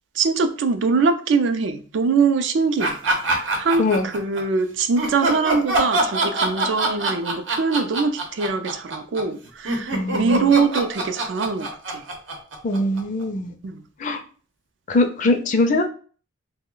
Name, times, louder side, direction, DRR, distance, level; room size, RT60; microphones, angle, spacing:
voice 1, 0.2-3.0 3.3-12.0 13.6-13.8, right 4 dB, 70° right, 9 dB, 0.4 m, -22 dB
sound 1, 2.8-4.4 5.0-13.2, right 2 dB, 90° right, 0.8 m, -24 dB
voice 2, 9.9-10.5 12.6-13.5 14.0-14.2 14.9-15.9, left 2 dB, 40° left, 6 dB, 0.4 m, -22 dB
2.9 x 2.1 x 3.7 m, 0.41 s
head